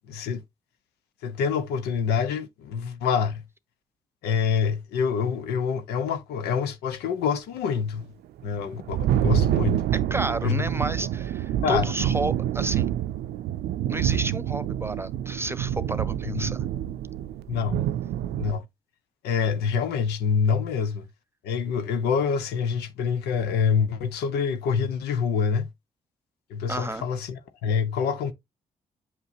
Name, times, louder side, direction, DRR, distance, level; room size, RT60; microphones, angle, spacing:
voice 1, 0.1-0.4 1.2-3.4 4.2-8.1 8.4-9.8 10.4-10.6 11.6-11.9 16.3-16.4 17.5-17.9 18.4-18.6 19.2-21.1 21.4-25.7 26.5-28.3, left 6 dB, 75° left, 0.8 m, -26 dB
Thunder, 8.4-18.5, right 11 dB, 70° right, 0.5 m, -27 dB
voice 2, 9.9-12.9 13.9-16.6 26.7-27.0, right 2 dB, 15° right, 1.0 m, -31 dB
8.0 x 5.5 x 2.7 m
hypercardioid pair, 45°, 17 cm